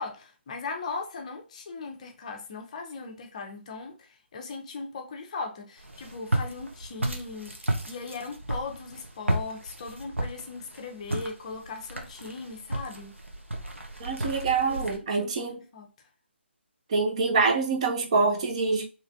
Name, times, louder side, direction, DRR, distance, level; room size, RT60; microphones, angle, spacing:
voice 1, 0.0-13.2 14.6-15.9, left 4 dB, 35° left, 0.5 m, -38 dB
Walk footsteps, 5.8-15.0, right 1 dB, 85° right, 0.8 m, -33 dB
voice 2, 14.0-15.6 16.9-18.8, right 4 dB, 30° right, 0.5 m, -25 dB
3.2 x 2.8 x 2.5 m
figure-of-eight pair, 145°, 7 cm